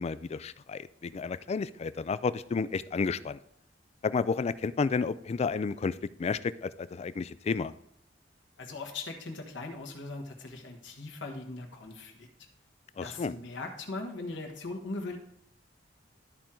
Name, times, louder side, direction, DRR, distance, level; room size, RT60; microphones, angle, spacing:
voice 1, 0.0-3.4 4.0-7.7 13.0-13.3, left 4 dB, 35° left, 16 dB, 0.3 m, -31 dB
voice 2, 8.6-12.3 13.0-15.2, left 3 dB, 75° left, 2 dB, 1.5 m, -39 dB
12.5 x 4.4 x 3.8 m, 0.70 s
head